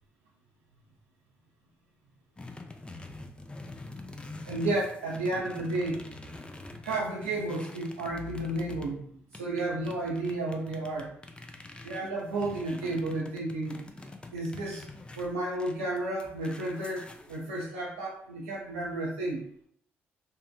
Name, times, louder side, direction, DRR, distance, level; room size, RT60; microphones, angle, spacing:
sound 1, 2.4-8.9 9.3-17.6, left 2 dB, 15° left, 0.4 m, -46 dB
voice 1, 4.5-6.0 6.8-11.1 11.8-13.8 14.3-14.8 15.2-19.4, right 2 dB, 85° right, -5 dB, 0.4 m, -32 dB
2.6 x 2.1 x 2.3 m, 0.65 s
hypercardioid pair, 45°, 6 cm